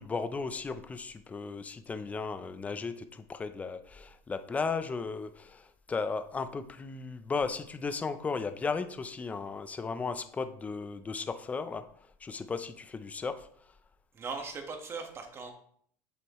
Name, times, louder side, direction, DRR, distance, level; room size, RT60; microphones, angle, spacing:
voice 1, 0.0-11.9 12.2-13.5, left 4 dB, 15° left, 10 dB, 0.6 m, -35 dB
voice 2, 14.1-15.5, right 4 dB, 30° right, 4 dB, 1.6 m, -39 dB
8.3 x 7.6 x 3.1 m, 0.63 s
supercardioid pair, 125°, 9 cm